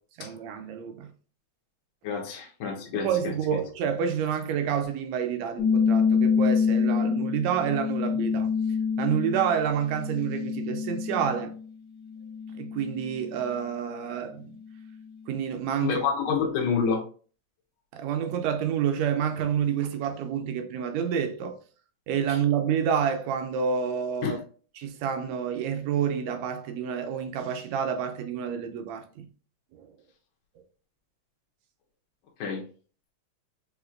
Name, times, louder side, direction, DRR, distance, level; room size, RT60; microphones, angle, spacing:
voice 1, 0.2-1.1 3.0-8.5 9.0-11.6 12.6-14.5 15.3-16.0 17.9-21.6 22.1-24.4 24.8-29.3 29.7-29.9, right 8 dB, 80° right, 1.8 m, -28 dB
voice 2, 2.0-3.1 15.8-17.0 22.3-22.4 24.2-24.4 32.4-32.6, left 6 dB, 70° left, 2.1 m, -28 dB
sound 1, 5.6-11.6 12.1-13.4, left 6 dB, 90° left, 1.0 m, -26 dB
6.2 x 3.0 x 2.5 m
omnidirectional pair, 3.3 m